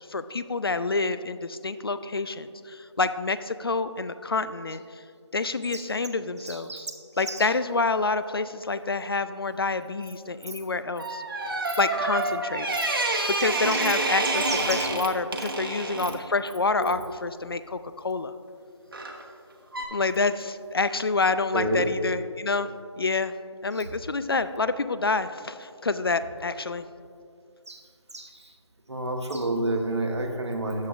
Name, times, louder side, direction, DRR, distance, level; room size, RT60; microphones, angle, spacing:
voice 1, 0.0-4.8 5.3-6.9 7.2-11.2 11.8-12.8 13.4-18.3 19.9-22.7 23.0-23.4 23.6-26.8, left 3 dB, 55° left, 13 dB, 0.4 m, -28 dB
voice 2, 6.4-6.9 7.3-7.5 10.5-10.6 13.4-13.8 14.5-14.9 16.8-16.9 21.5-21.9 23.7-23.8 27.7-27.8 28.1-28.5 28.9-30.9, right 2 dB, 65° right, 3 dB, 1.2 m, -30 dB
Insect, 9.8-10.1 10.4-10.6 11.0-11.1 11.4-11.8 12.2-12.4 12.7-12.9 13.2-13.4 13.8-13.9 14.2-14.5 15.0-15.5 15.8-17.1, right 4 dB, 20° right, 0.5 m, -45 dB
sound 1, 11.0-16.2 18.9-19.2 19.7-19.9, right 2 dB, 50° right, 1.1 m, -28 dB
13.0 x 7.4 x 2.5 m, 2.3 s
figure-of-eight pair, 160°, 15 cm